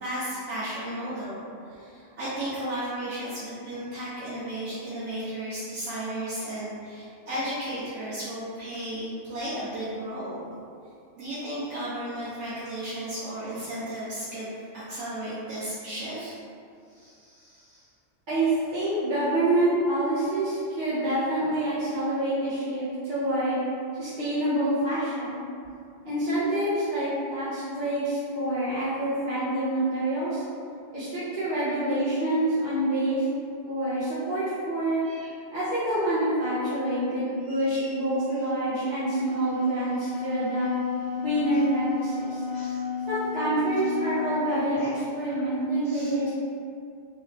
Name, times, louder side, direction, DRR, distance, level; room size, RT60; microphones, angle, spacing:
voice 1, 0.0-10.5 11.1-16.3 16.9-17.9 35.0-35.3 37.5-37.9 38.3-38.4 40.0-40.1 42.5-42.8 44.1-44.3 45.4-45.5 45.8-46.1, right 1 dB, 85° right, -12 dB, 1.1 m, -35 dB
voice 2, 18.3-23.6 24.0-25.4 26.0-30.4 30.9-33.2 33.6-35.0 35.5-40.7 41.1-42.5 43.1-46.3, right 1 dB, 50° right, -12 dB, 0.9 m, -27 dB
Wind instrument woodwind instrument, 39.2-44.4, left 7 dB, 70° left, 1.1 m, -32 dB
3.2 x 2.4 x 3.1 m, 2.4 s
omnidirectional pair, 1.2 m